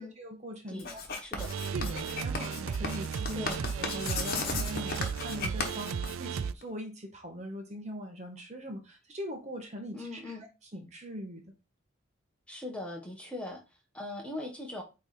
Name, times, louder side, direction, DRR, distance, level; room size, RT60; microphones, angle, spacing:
voice 1, 0.0-1.0 1.7-10.4 10.7-11.4, equal, 35° right, 3 dB, 1.3 m, -41 dB
Writing, 0.8-6.6, left 4 dB, 45° left, 1.3 m, -36 dB
sound 1, 1.4-6.5, right 6 dB, 80° right, 0.4 m, -35 dB
voice 2, 9.9-10.4 12.5-13.6 13.9-14.8, left 2 dB, 5° left, 0 dB, 1.3 m, -40 dB
8.9 x 3.3 x 4.3 m, 0.28 s
head